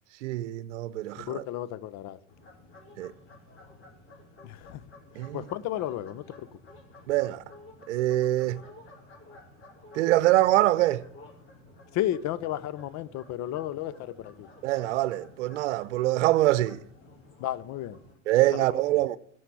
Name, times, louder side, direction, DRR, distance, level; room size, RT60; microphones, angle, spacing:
voice 1, 0.2-1.4 3.0-3.1 5.2-5.4 7.1-7.4 7.9-8.6 9.9-11.0 14.6-16.8 18.3-19.2, right 16 dB, 80° right, 0.7 m, -24 dB
voice 2, 1.2-2.2 4.4-4.8 5.3-6.5 11.9-14.5 17.4-18.0 18.5-18.8, left 13 dB, 50° left, 0.9 m, -33 dB
sound 1, 2.3-18.1, left 2 dB, 35° left, 4.7 m, -52 dB
15.5 x 6.4 x 8.5 m
hypercardioid pair, 100°, 35 cm